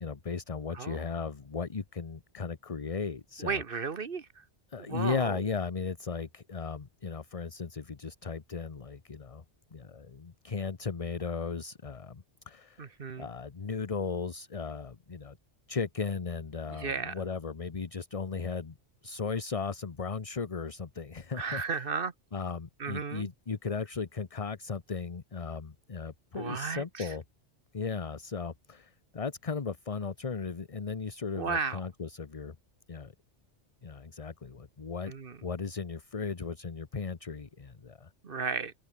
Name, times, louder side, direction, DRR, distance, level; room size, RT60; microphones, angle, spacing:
voice 1, 0.0-3.9 4.7-9.4 9.7-12.9 13.2-15.4 15.7-18.7 19.0-21.9 22.3-27.2 27.7-32.5 32.9-33.1 33.8-35.1 35.4-38.1, left 5 dB, 35° left, 1.0 m, -36 dB
voice 2, 3.4-4.2 4.9-5.4 12.8-13.3 16.8-17.1 21.4-22.1 22.8-23.3 26.4-27.1 31.4-31.8 35.1-35.4 38.2-38.7, right 5 dB, 55° right, 1.3 m, -34 dB
open air
omnidirectional pair, 1.2 m